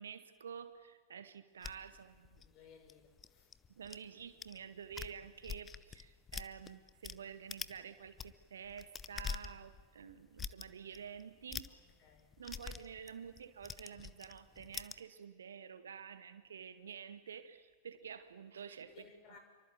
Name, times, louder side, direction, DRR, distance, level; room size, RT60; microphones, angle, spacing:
voice 1, 0.0-2.4 3.7-11.7 12.4-19.4, right 7 dB, 65° right, 1.9 m, -50 dB
sound 1, 1.6-4.0 4.4-4.6 4.8-7.2 7.5-7.8 8.1-15.0, left 6 dB, 20° left, 1.0 m, -45 dB
voice 2, 2.4-3.5 11.7-12.4 18.9-19.4, left 6 dB, 40° left, 6.4 m, -61 dB
28.5 x 24.5 x 8.5 m
figure-of-eight pair, 90°, 0 cm